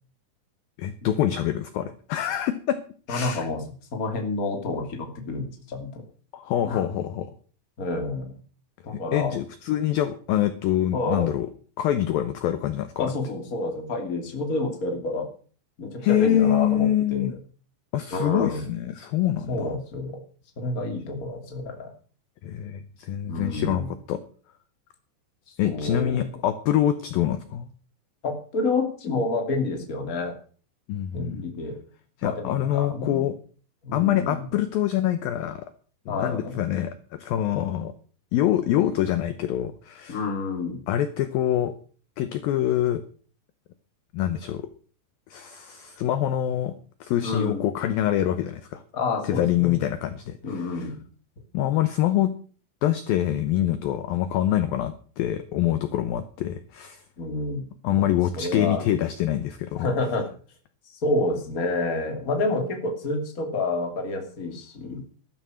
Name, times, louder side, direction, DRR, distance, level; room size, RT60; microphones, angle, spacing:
voice 1, 0.8-2.8 3.1-3.5 6.3-7.3 8.9-11.5 11.8-13.1 16.0-17.3 17.9-19.7 22.4-24.2 25.6-27.7 30.9-31.4 32.2-33.3 33.9-35.6 36.1-37.9 38.3-40.2 40.9-41.7 42.2-43.0 44.1-44.7 45.3-46.7 47.0-48.8 49.3-50.9 51.5-52.3 52.8-57.0 57.8-59.9, left 12 dB, 75° left, 11 dB, 2.1 m, -25 dB
voice 2, 3.1-3.6 3.9-6.0 6.6-6.8 7.8-8.3 8.8-9.3 10.9-11.3 13.0-15.3 15.8-17.4 18.1-18.6 19.5-20.1 20.6-21.9 23.3-23.9 25.6-26.3 28.2-30.3 31.1-31.8 32.2-33.3 33.8-34.5 36.1-36.6 40.1-40.8 47.2-47.6 48.9-49.8 50.4-51.0 57.2-58.1 58.4-58.8 59.7-60.3 61.0-65.0, left 2 dB, 25° left, 4 dB, 2.1 m, -29 dB
13.0 x 13.0 x 6.3 m, 0.42 s
omnidirectional pair, 5.3 m